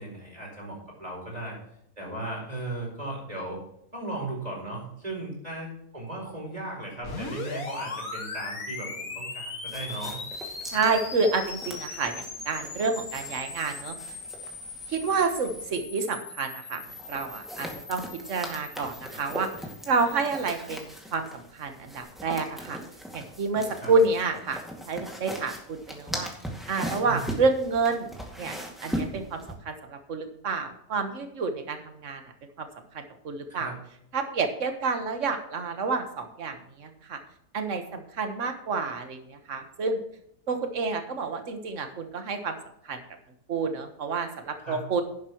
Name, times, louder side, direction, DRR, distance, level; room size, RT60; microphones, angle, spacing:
voice 1, 0.0-1.6 2.0-3.6 3.9-10.1 23.8-23.9 27.0-27.3 33.5-33.8 44.6-44.8, right 2 dB, 25° right, -1 dB, 4.8 m, -36 dB
sound 1, 7.0-20.9, left 3 dB, 70° left, 2.4 m, -39 dB
sound 2, 9.7-15.8 16.8-29.5, equal, ahead, 2.1 m, -40 dB
voice 2, 10.7-14.0 14.9-16.8 17.1-19.5 19.9-22.8 23.1-24.6 24.9-26.3 26.7-28.5 28.8-32.2 32.6-32.7 32.9-33.7 34.1-37.2 37.5-40.0 40.5-42.6 42.9-43.0 43.5-45.0, right 4 dB, 55° right, 6 dB, 1.7 m, -29 dB
11.5 x 10.5 x 3.1 m, 0.74 s
omnidirectional pair, 1.6 m